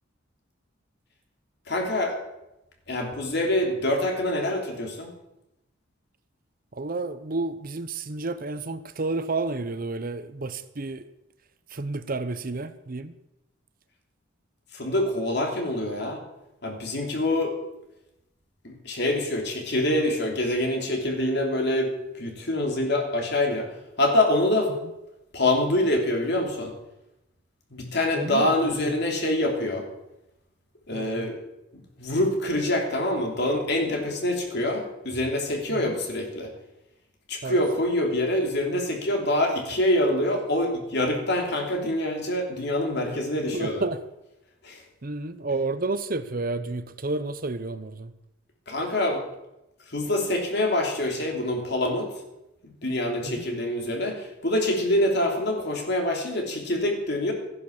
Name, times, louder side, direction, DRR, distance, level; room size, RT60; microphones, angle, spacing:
voice 1, 1.7-2.2 2.9-5.1 14.7-16.2 16.6-17.5 18.6-23.7 24.0-24.7 25.3-26.7 27.7-29.8 30.9-31.4 32.0-36.5 37.3-43.8 44.6-44.8 48.7-49.2 49.9-52.1 52.6-57.3, left 1 dB, 55° left, 2 dB, 3.2 m, -25 dB
voice 2, 6.7-11.1 11.7-13.1 28.1-29.0 30.9-31.3 35.7-36.0 37.4-37.6 43.5-44.0 45.0-48.1 53.2-53.5, right 3 dB, 45° right, 13 dB, 0.8 m, -31 dB
14.5 x 11.0 x 7.3 m, 0.91 s
head